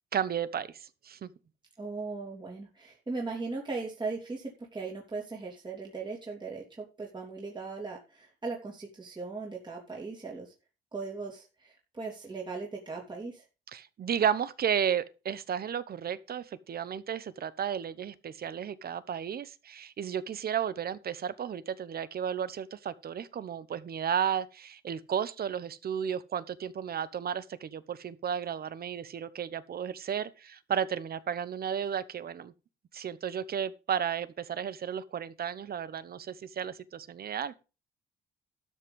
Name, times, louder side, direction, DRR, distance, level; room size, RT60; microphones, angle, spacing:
voice 1, 0.1-1.3 13.7-32.5 32.9-37.6, right 8 dB, 50° right, 1.0 m, -33 dB
voice 2, 1.8-6.6 7.0-10.5 10.9-13.4, right 4 dB, 20° right, 2.9 m, -38 dB
12.5 x 6.0 x 5.3 m
cardioid pair, 90°, 20 cm